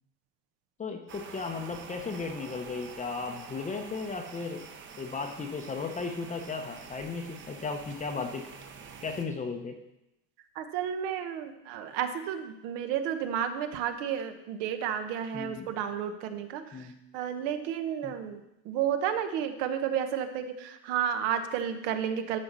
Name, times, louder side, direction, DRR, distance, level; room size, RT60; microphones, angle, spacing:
voice 1, 0.8-4.7 5.0-8.4 9.0-9.7 15.3-15.7 16.7-16.9 18.0-18.1, left 4 dB, 15° left, 5 dB, 0.8 m, -35 dB
sound 1, 1.1-9.3, right 5 dB, 30° right, 1.0 m, -47 dB
voice 2, 10.5-16.9 17.1-22.4, right 9 dB, 65° right, 8 dB, 1.3 m, -32 dB
12.5 x 4.3 x 6.8 m, 0.87 s
cardioid pair, 150°, 42 cm